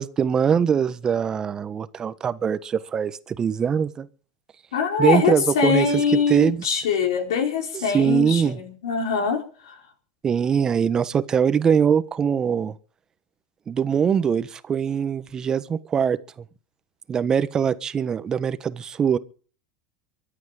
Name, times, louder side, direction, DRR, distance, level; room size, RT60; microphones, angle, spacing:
voice 1, 0.0-4.1 5.0-6.7 7.7-8.6 10.2-12.7 13.7-16.2 17.1-19.2, right 7 dB, 30° right, 1.3 m, -22 dB
voice 2, 4.7-9.7, left 6 dB, 80° left, 4.6 m, -23 dB
24.0 x 8.6 x 5.1 m
hypercardioid pair, 100°, 2 cm